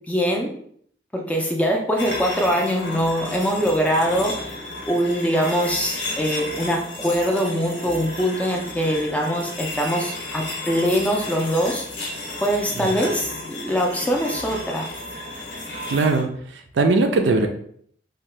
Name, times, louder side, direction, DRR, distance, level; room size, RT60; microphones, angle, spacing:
voice 1, 0.1-0.6 1.1-4.6 4.9-12.1 12.4-14.9, equal, 10° left, 0 dB, 0.4 m, -23 dB
sound 1, 2.0-16.2, left 2 dB, 75° left, 0.7 m, -33 dB
voice 2, 15.9-16.3 16.7-17.5, right 3 dB, 80° right, 5 dB, 0.4 m, -19 dB
2.7 x 2.2 x 3.2 m, 0.64 s
head